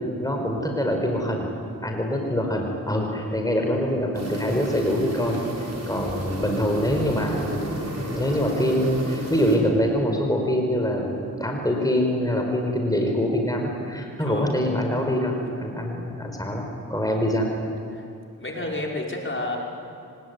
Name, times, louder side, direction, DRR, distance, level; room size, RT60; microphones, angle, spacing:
voice 1, 0.2-1.5 1.8-5.4 5.9-17.5, equal, 10° left, 2 dB, 4.7 m, -24 dB
sound 1, 4.1-9.6, right 1 dB, 45° right, 6.5 m, -33 dB
voice 2, 14.2-14.5 17.9-18.0 18.4-19.6, left 2 dB, 35° left, -1 dB, 5.4 m, -30 dB
24.5 x 20.5 x 9.7 m, 2.6 s
cardioid pair, 45°, 36 cm